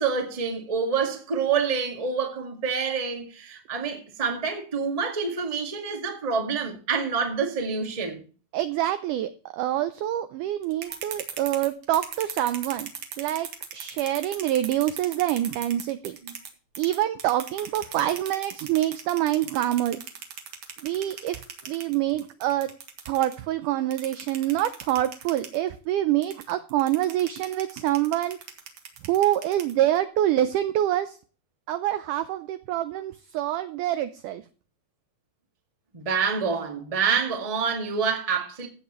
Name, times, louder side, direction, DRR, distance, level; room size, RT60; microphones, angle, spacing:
voice 1, 0.0-8.2 10.9-11.0 35.9-38.7, right 5 dB, 25° right, 0.8 m, -27 dB
voice 2, 8.5-12.9 13.2-16.2 16.8-20.0 20.8-21.4 21.7-22.7 23.1-28.4 29.0-31.2 31.7-34.4, right 13 dB, 85° right, 1.8 m, -26 dB
sound 1, 10.6-16.5 16.8-23.4 23.9-25.6 26.2-30.0, right 7 dB, 55° right, 2.7 m, -38 dB
15.5 x 8.1 x 3.1 m
omnidirectional pair, 4.3 m